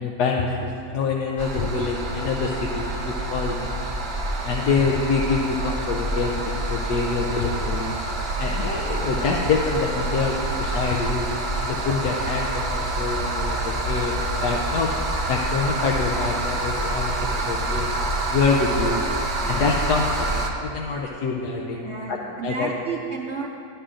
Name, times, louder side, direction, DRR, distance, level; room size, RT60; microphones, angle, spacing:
voice 1, 0.0-3.7 4.4-8.0 8.4-11.3 11.6-14.9 15.3-17.9 18.3-19.0 19.5-22.7, left 4 dB, 70° left, 0 dB, 1.1 m, -26 dB
sound 1, 1.4-20.5, right 2 dB, 40° right, 0.8 m, -27 dB
voice 2, 21.8-23.5, right 5 dB, 80° right, 0 dB, 0.6 m, -31 dB
12.5 x 11.5 x 2.5 m, 2.6 s
omnidirectional pair, 1.9 m